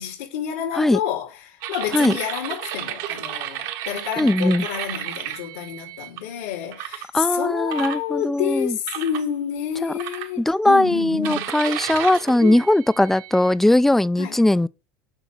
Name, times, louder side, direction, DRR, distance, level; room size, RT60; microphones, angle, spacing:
voice 1, 0.0-11.5 12.4-12.6 14.2-14.4, left 9 dB, 90° left, 3.1 m, -29 dB
sound 1, 1.6-6.2 6.7-7.1 7.7-8.4 8.9-9.3 10.0-10.7 11.2-13.6, right 12 dB, 65° right, 1.3 m, -33 dB
voice 2, 4.2-4.6 7.1-8.8 9.8-9.9 10.4-14.7, left 1 dB, 5° left, 0.3 m, -19 dB
7.0 x 5.6 x 6.0 m
supercardioid pair, 115°, 7 cm